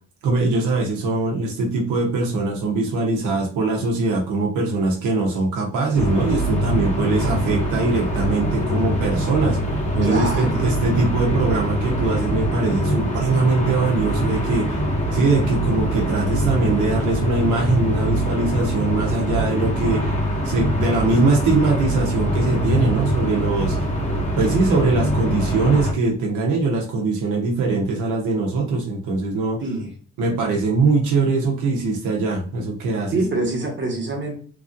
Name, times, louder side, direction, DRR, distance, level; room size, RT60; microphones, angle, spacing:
voice 1, 0.2-9.6 10.0-14.8 15.1-20.1 20.4-23.8 24.4-29.6 30.2-33.1, right 3 dB, 80° right, -1 dB, 0.9 m, -22 dB
sound 1, 5.9-25.9, equal, 25° left, 1.1 m, -23 dB
voice 2, 10.0-10.6 29.6-29.9 33.1-34.3, right 2 dB, 40° right, 0 dB, 1.2 m, -25 dB
3.1 x 2.5 x 2.5 m, 0.43 s
cardioid pair, 90°, 30 cm